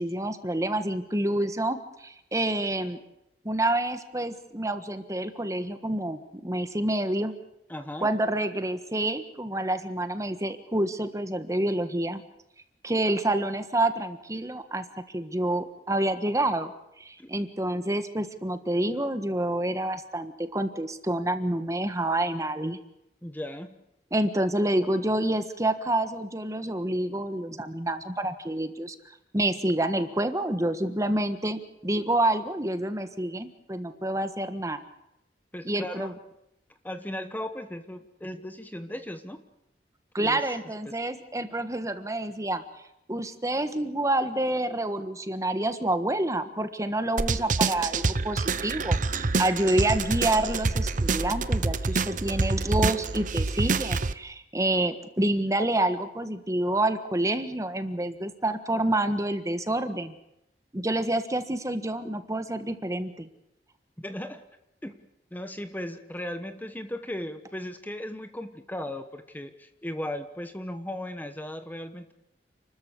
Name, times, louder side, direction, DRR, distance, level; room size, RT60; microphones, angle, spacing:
voice 1, 0.0-3.0 3.4-7.3 8.0-12.2 12.8-14.8 15.1-16.7 17.0-22.8 24.1-28.9 29.3-34.8 35.6-36.1 40.1-42.6 43.1-60.1 60.7-63.3, right 1 dB, 20° right, 10 dB, 1.4 m, -28 dB
voice 2, 7.7-8.1 17.2-17.3 23.2-23.8 35.5-36.1 36.8-39.4 40.2-40.4 64.0-64.4 64.8-65.0 65.3-72.1, left 1 dB, 10° left, 9 dB, 1.2 m, -36 dB
sound 1, 47.2-54.1, right 3 dB, 50° right, 0.9 m, -27 dB
29.5 x 13.5 x 8.3 m, 0.84 s
head